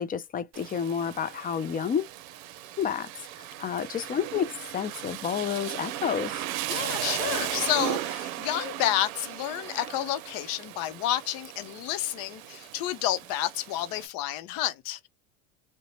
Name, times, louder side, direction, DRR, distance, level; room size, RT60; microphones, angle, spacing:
voice 1, 0.0-2.1 2.8-3.1 3.4-6.4, left 8 dB, 20° left, 0.4 m, -30 dB
Rain, 0.5-14.1, right 13 dB, 80° right, 0.6 m, -36 dB
voice 2, 6.7-15.1, left 13 dB, 55° left, 0.7 m, -30 dB
2.8 x 2.1 x 2.9 m
supercardioid pair, 95°, 40 cm